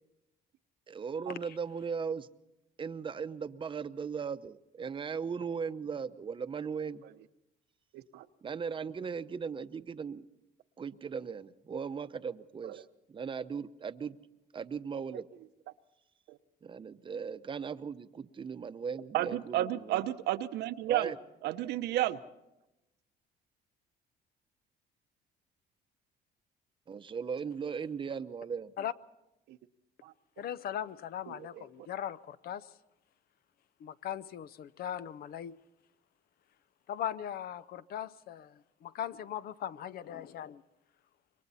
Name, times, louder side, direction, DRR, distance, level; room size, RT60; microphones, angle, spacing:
voice 1, 0.9-2.3 2.8-7.0 8.4-10.3 10.8-14.2 14.5-15.3 16.6-20.0 20.8-21.2 26.9-28.7, right 6 dB, 30° right, 0.8 m, -38 dB
voice 2, 7.9-8.2 12.6-12.7 16.3-16.4 19.1-21.1 21.4-22.2 29.5-29.6 30.0-30.1 31.3-31.6, right 14 dB, 80° right, 0.9 m, -32 dB
voice 3, 30.4-32.7 33.8-35.6 36.9-38.5 38.8-40.6, left 10 dB, 65° left, 0.7 m, -39 dB
27.0 x 23.0 x 4.2 m
cardioid pair, 110°, 17 cm